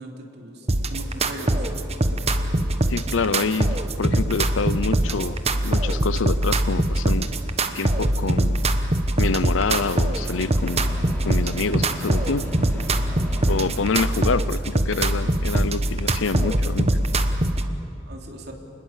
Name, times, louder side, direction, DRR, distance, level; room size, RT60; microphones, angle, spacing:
voice 1, 0.0-1.7 18.1-18.5, right 1 dB, 60° right, 1 dB, 3.5 m, -39 dB
sound 1, 0.6-5.6 5.9-8.0, left 1 dB, 30° left, 4.6 m, -47 dB
sound 2, 0.7-17.7, right 1 dB, 35° right, 1.2 m, -22 dB
voice 2, 2.9-5.4 5.6-7.3 7.7-8.6 9.2-10.9 11.2-12.5 13.5-16.9, left 4 dB, 80° left, 17 dB, 0.7 m, -26 dB
Microwave oven, 9.2-9.3 10.2-14.4, left 1 dB, 10° left, 3.7 m, -38 dB
28.0 x 20.5 x 8.4 m, 2.8 s
head